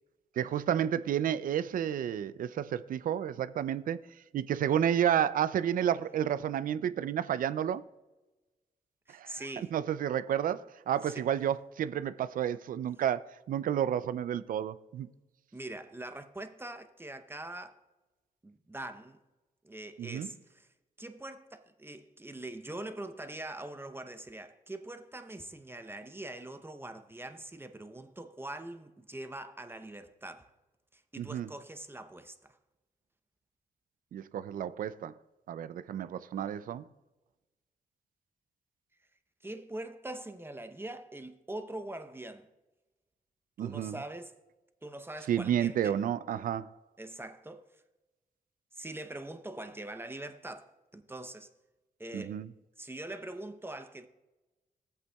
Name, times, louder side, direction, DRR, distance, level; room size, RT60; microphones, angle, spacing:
voice 1, 0.4-4.0 4.3-7.8 9.1-9.4 9.7-15.1 20.0-20.3 31.2-31.5 34.1-35.1 35.5-36.8 43.6-43.9 45.3-46.7 52.1-52.5, right 9 dB, 70° right, 0.4 m, -31 dB
voice 2, 9.1-9.7 11.0-11.2 15.5-17.8 18.4-19.2 19.6-20.7 21.0-30.5 30.9-32.6 39.4-42.5 43.6-44.3 44.8-46.0 47.0-47.7 48.7-51.5 52.0-52.4 52.8-54.1, right 1 dB, 15° right, 0.7 m, -43 dB
14.5 x 8.2 x 2.3 m
cardioid pair, 70°, 15 cm